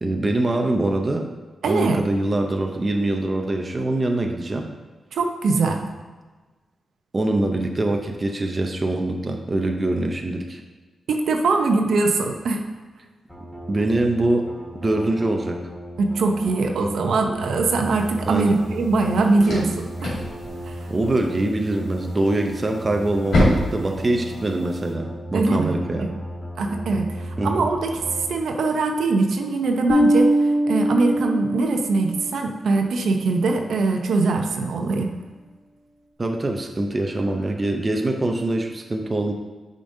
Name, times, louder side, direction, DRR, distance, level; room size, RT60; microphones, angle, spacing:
voice 1, 0.0-1.2 1.6-4.7 7.1-10.6 13.4-14.5 14.8-15.6 18.3-18.6 20.9-26.1 27.4-27.7 36.2-39.3, right 2 dB, 25° right, 4 dB, 0.5 m, -24 dB
voice 2, 1.6-2.0 5.1-5.8 11.1-12.6 16.0-20.2 20.7-20.8 25.3-25.7 26.0-26.1 26.6-28.0 28.3-35.1, right 3 dB, 80° right, 4 dB, 0.6 m, -22 dB
sound 1, 13.3-28.3, equal, 5° left, 1.4 m, -36 dB
sound 2, 17.8-24.9, left 1 dB, 75° left, 2.1 m, -28 dB
Bass guitar, 29.9-32.3, right 1 dB, 40° left, 1.1 m, -21 dB
8.7 x 5.1 x 2.7 m, 1.3 s
wide cardioid pair, 150°, 0 cm